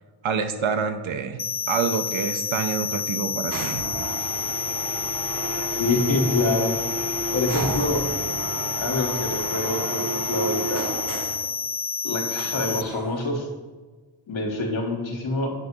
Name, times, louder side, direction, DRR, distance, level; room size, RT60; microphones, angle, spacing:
voice 1, 0.2-1.4 1.7-3.8, right 6 dB, 80° right, 8 dB, 0.7 m, -27 dB
sound 1, 1.4-12.8, left 6 dB, 30° left, 0.4 m, -29 dB
sound 2, 3.5-11.5 12.4-13.3, right 3 dB, 45° right, 0.8 m, -32 dB
voice 2, 5.8-6.7 7.3-8.1 8.8-10.9 12.0-13.5 14.3-15.5, left 2 dB, 85° left, 0 dB, 1.4 m, -26 dB
8.3 x 2.8 x 6.0 m, 1.4 s
cardioid pair, 60°, 46 cm